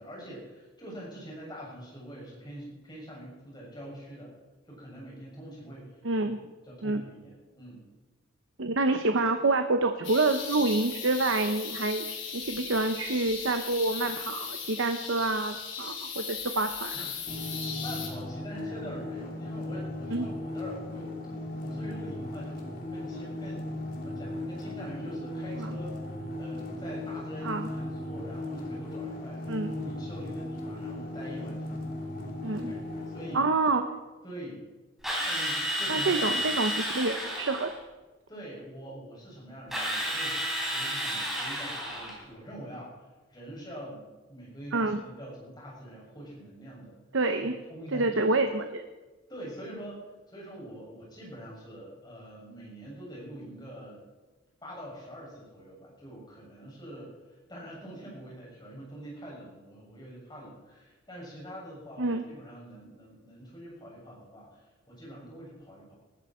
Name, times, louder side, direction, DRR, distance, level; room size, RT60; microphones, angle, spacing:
voice 1, 0.0-4.3 4.7-6.0 6.6-7.9 16.9-17.2 17.5-21.1 21.6-23.7 23.9-31.9 32.4-33.4 34.2-34.6 35.2-36.5 38.3-47.0 47.7-48.3 49.3-54.0 54.6-65.9, right 1 dB, 20° left, -4 dB, 6.9 m, -44 dB
voice 2, 6.0-6.4 6.8-7.0 8.6-12.1 12.3-16.9 20.1-20.3 25.6-25.8 27.4-27.7 29.5-29.7 32.4-32.7 33.3-33.8 35.9-37.7 44.7-45.0 47.1-47.6 47.9-48.8 62.0-62.2, right 2 dB, 80° right, 7 dB, 0.9 m, -27 dB
sound 1, 10.0-18.1, left 6 dB, 70° left, 3.7 m, -37 dB
sound 2, 17.3-33.4, left 1 dB, 45° left, 2.8 m, -37 dB
Drill, 35.0-37.7 39.7-42.2, equal, ahead, 4.2 m, -31 dB
20.0 x 13.5 x 4.4 m, 1.2 s
head